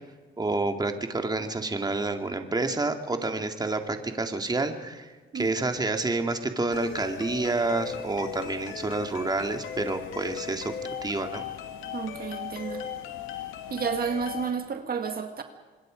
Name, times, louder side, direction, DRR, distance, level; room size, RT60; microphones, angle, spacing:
voice 1, 0.4-10.7 11.0-11.5, right 3 dB, 20° right, 5 dB, 2.3 m, -29 dB
sound 1, 6.7-14.5, left 8 dB, 90° left, 2.2 m, -37 dB
voice 2, 11.9-12.8 13.7-15.4, right 6 dB, 50° right, 6 dB, 1.9 m, -31 dB
26.0 x 21.5 x 5.2 m, 1.3 s
cardioid pair, 90°, 20 cm